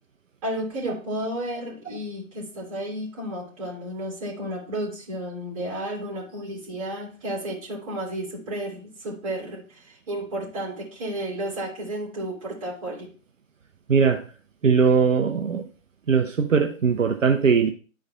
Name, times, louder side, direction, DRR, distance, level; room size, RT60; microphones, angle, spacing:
voice 1, 0.4-13.1, right 1 dB, 25° right, -5 dB, 2.6 m, -32 dB
voice 2, 13.9-14.2 14.6-15.7 16.1-17.7, right 5 dB, 65° right, 4 dB, 0.7 m, -20 dB
11.0 x 4.7 x 2.4 m, 0.37 s
figure-of-eight pair, 155°, 41 cm